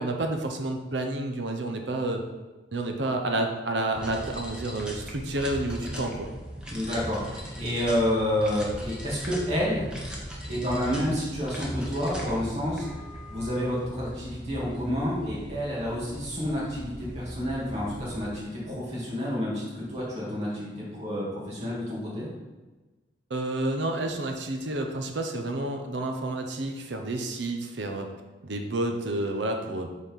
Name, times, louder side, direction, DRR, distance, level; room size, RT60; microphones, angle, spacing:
voice 1, 0.0-2.2 2.7-6.3 10.7-11.1 23.3-28.1 28.4-29.9, right 2 dB, 70° right, 4 dB, 0.8 m, -30 dB
sound 1, 3.9-18.3, equal, 5° right, 1.2 m, -39 dB
voice 2, 6.7-9.8 10.5-12.9 13.3-22.3, equal, 35° right, -6 dB, 2.4 m, -29 dB
7.3 x 4.2 x 5.4 m, 1.2 s
head